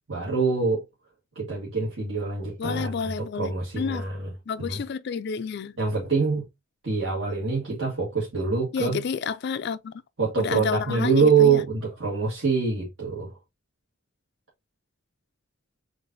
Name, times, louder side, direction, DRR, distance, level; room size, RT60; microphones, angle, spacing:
voice 1, 0.1-0.8 1.3-4.3 4.6-4.8 5.8-6.4 6.8-9.0 10.2-13.4, right 5 dB, 60° right, 1.6 m, -25 dB
voice 2, 2.6-4.1 4.5-5.7 8.7-9.9 10.4-11.6, left 6 dB, 50° left, 0.4 m, -30 dB
6.8 x 2.5 x 2.6 m
head